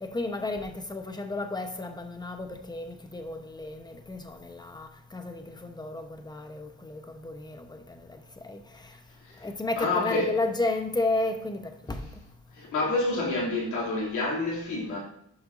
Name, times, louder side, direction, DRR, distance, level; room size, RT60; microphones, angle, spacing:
voice 1, 0.0-9.0 9.4-12.1, left 2 dB, 15° left, 1.0 m, -33 dB
voice 2, 9.8-10.3 12.5-15.0, left 2 dB, 75° left, 3.0 m, -28 dB
11.5 x 5.9 x 2.7 m
cardioid pair, 90°, 30 cm